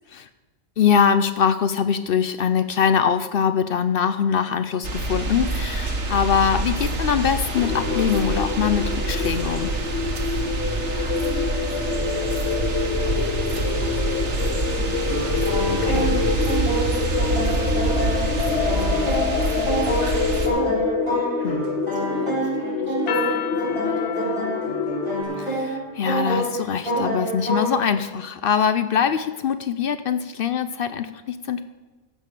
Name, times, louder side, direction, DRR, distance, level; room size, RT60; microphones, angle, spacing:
voice 1, 0.8-9.7 15.7-16.2 21.4-21.7 25.4-31.6, left 7 dB, 60° left, 11 dB, 0.7 m, -23 dB
sound 1, 4.8-20.5, right 2 dB, 90° right, 1.7 m, -26 dB
sound 2, 7.5-25.2, left 6 dB, 80° left, 1.0 m, -27 dB
voice 2, 10.4-15.4 16.0-16.2 16.4-20.8 21.9-24.5, right 1 dB, 70° right, -4 dB, 3.4 m, -42 dB
sound 3, 15.1-27.9, right 2 dB, 25° right, 4.5 m, -28 dB
14.5 x 5.6 x 6.5 m, 1.2 s
omnidirectional pair, 1.1 m